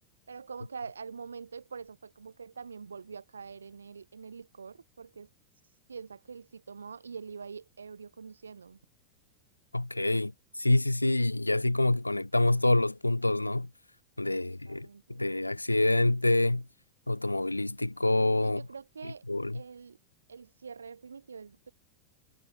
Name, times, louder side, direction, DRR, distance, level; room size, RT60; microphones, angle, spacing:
voice 1, 0.3-5.3 5.9-8.8 14.4-15.2 18.4-19.2 19.5-20.0 20.3-21.7, right 5 dB, 75° right, 4.2 m, -45 dB
voice 2, 9.7-13.7 14.2-16.6 17.1-18.6 19.0-19.6, left 2 dB, 85° left, 0.4 m, -27 dB
figure-of-eight pair, 90°, 0 cm